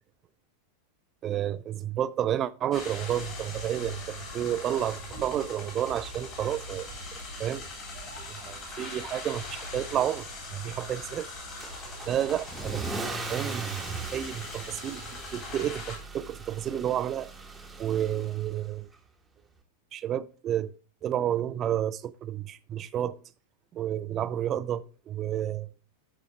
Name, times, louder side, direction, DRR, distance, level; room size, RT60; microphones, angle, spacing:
voice 1, 1.2-6.9 7.4-7.7 8.3-11.3 12.1-12.8 13.3-17.3 17.8-18.9 19.9-20.7 21.0-23.2 23.7-25.7, right 11 dB, 30° right, 0.4 m, -31 dB
sound 1, 2.7-16.0, left 3 dB, 30° left, 3.5 m, -42 dB
sound 2, 3.1-15.7, right 1 dB, 85° left, 4.1 m, -46 dB
Car / Engine starting / Accelerating revving vroom, 11.6-18.7, right 3 dB, 10° right, 1.3 m, -39 dB
12.0 x 4.6 x 3.4 m
figure-of-eight pair, 90°, 0 cm